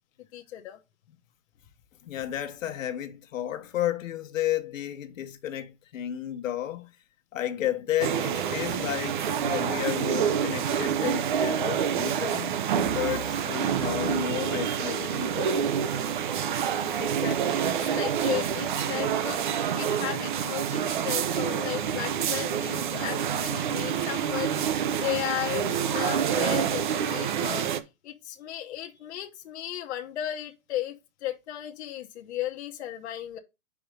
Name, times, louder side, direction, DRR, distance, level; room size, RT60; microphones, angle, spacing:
voice 1, 0.3-0.8 17.0-27.7 28.0-30.9 31.2-33.4, left 12 dB, 55° left, 0.9 m, -35 dB
voice 2, 2.0-6.9 7.3-12.5 12.9-15.5, left 11 dB, 75° left, 1.1 m, -32 dB
sound 1, 8.0-27.8, right 8 dB, 40° right, 0.5 m, -27 dB
5.1 x 4.9 x 5.0 m
supercardioid pair, 175°, 39 cm